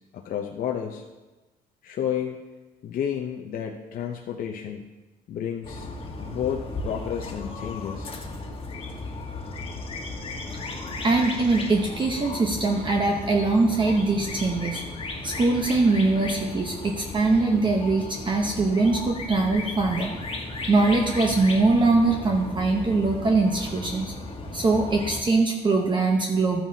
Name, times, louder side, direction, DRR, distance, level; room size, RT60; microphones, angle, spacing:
voice 1, 0.1-1.0 1.8-2.4 2.8-4.8 5.3-5.9 6.2-8.2, left 9 dB, 55° left, 1 dB, 0.8 m, -31 dB
sound 1, 5.6-25.2, left 2 dB, 35° left, 1.4 m, -35 dB
voice 2, 11.0-14.8 15.2-20.1 20.7-24.1 24.5-26.6, right 3 dB, 30° right, 1 dB, 1.0 m, -22 dB
13.0 x 9.1 x 2.8 m, 1.2 s
cardioid pair, 110°, 17 cm